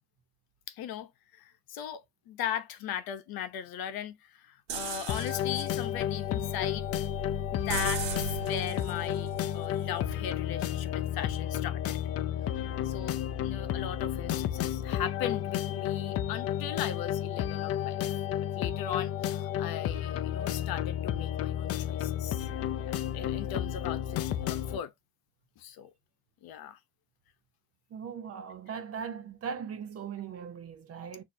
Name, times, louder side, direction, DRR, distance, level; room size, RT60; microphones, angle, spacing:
voice 1, 0.7-6.9 7.5-12.0 12.8-18.2 18.5-22.5 22.8-24.9 25.6-25.9 26.4-26.8, left 10 dB, 50° left, 1.0 m, -38 dB
sound 1, 4.7-10.5, right 5 dB, 55° right, 1.3 m, -39 dB
sound 2, 5.1-24.8, left 11 dB, 35° left, 0.4 m, -32 dB
voice 2, 27.9-31.2, right 7 dB, 30° right, 0.7 m, -39 dB
6.4 x 2.8 x 2.7 m
cardioid pair, 175°, 45 cm